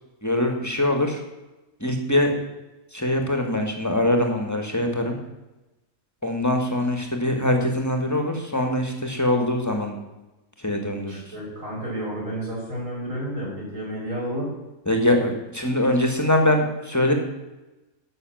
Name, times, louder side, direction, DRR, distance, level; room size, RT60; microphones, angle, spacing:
voice 1, 0.2-1.2 1.8-2.3 2.9-5.2 6.2-10.0 10.6-11.2 14.9-17.1, left 1 dB, 10° left, 3 dB, 1.7 m, -23 dB
voice 2, 11.1-14.5, right 1 dB, 55° right, -5 dB, 6.1 m, -31 dB
12.0 x 6.5 x 7.8 m, 1.0 s
omnidirectional pair, 1.6 m